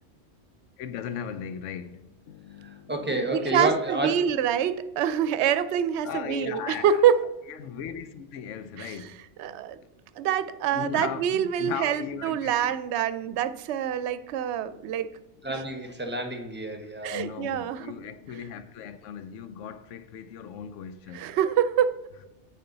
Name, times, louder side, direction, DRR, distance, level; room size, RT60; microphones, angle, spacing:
voice 1, 0.8-3.3 6.0-7.0 7.6-9.2 9.5-9.7 10.7-12.7 13.3-13.4 17.1-21.3, left 8 dB, 85° left, 1.0 m, -38 dB
voice 2, 2.6-4.1 15.4-17.3, right 1 dB, 10° right, 1.1 m, -30 dB
voice 3, 3.3-7.2 8.8-9.8 10.2-15.1 17.0-17.9 21.1-22.0, right 9 dB, 70° right, 0.8 m, -26 dB
8.7 x 6.8 x 4.0 m
omnidirectional pair, 1.2 m